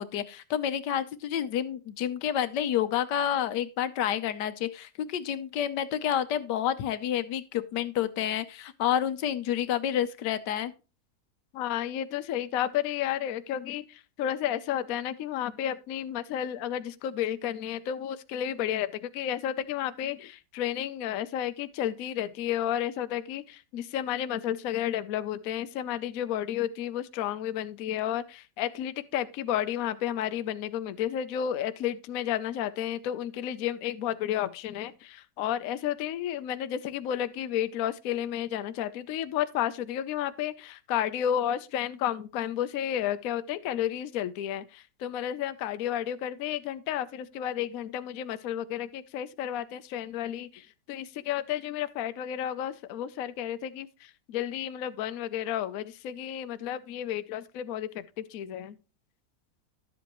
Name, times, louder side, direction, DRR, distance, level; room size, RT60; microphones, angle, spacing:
voice 1, 0.0-10.7, left 10 dB, 80° left, 1.4 m, -29 dB
voice 2, 11.5-13.8 14.2-50.6 50.9-53.9 54.3-58.0 58.3-58.8, left 10 dB, 65° left, 1.0 m, -32 dB
12.0 x 7.8 x 3.0 m
omnidirectional pair, 1.8 m